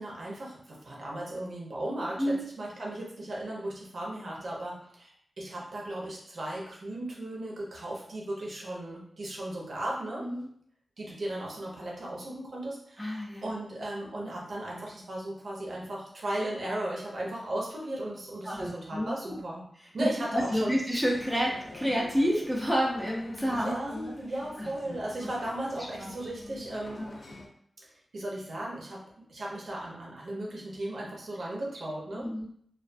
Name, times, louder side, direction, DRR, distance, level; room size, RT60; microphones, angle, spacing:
voice 1, 0.0-10.3 11.0-19.7 19.9-20.7 23.5-27.0 27.8-27.9 28.1-32.3, right 1 dB, 60° right, -3 dB, 0.6 m, -36 dB
voice 2, 13.0-13.5 18.4-19.4 20.0-24.1 24.6-25.0 26.0-26.2 27.0-27.2 32.2-32.5, equal, ahead, -4 dB, 0.5 m, -30 dB
sound 1, 20.9-27.5, left 2 dB, 65° left, 0.4 m, -47 dB
2.3 x 2.3 x 2.5 m, 0.65 s
wide cardioid pair, 140°, 0 cm